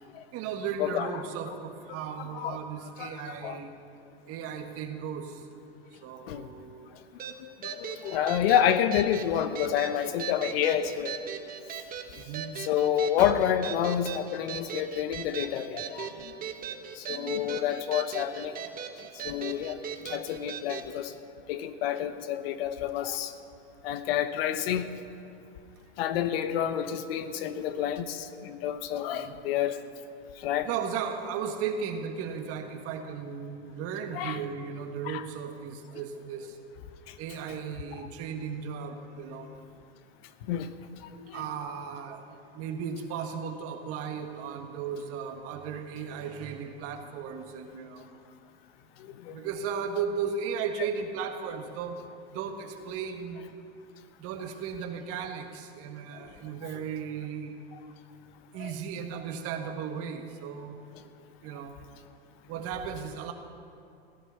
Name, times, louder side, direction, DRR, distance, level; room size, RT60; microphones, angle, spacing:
voice 1, 0.3-3.7 4.3-5.4 5.9-6.9 12.1-12.5 17.1-17.4 29.1-29.3 30.7-36.6 37.2-39.5 41.3-48.1 49.3-52.0 52.3-53.5 54.2-57.6 58.5-61.1 61.4-61.7 62.5-63.3, right 6 dB, 45° right, 5 dB, 1.6 m, -36 dB
voice 2, 3.0-3.6 6.3-6.5 7.4-11.2 12.6-16.3 16.9-18.5 19.1-21.1 21.5-23.3 23.8-24.9 26.0-29.8 30.4-30.7 34.1-34.4 35.0-35.2 37.1-37.2 40.5-40.7 41.1-41.4 49.0-49.4 58.6-58.7, left 10 dB, 70° left, 11 dB, 1.1 m, -29 dB
sound 1, 7.2-20.9, right 7 dB, 25° right, 1.1 m, -39 dB
16.5 x 11.0 x 5.7 m, 2.6 s
hypercardioid pair, 115°, 32 cm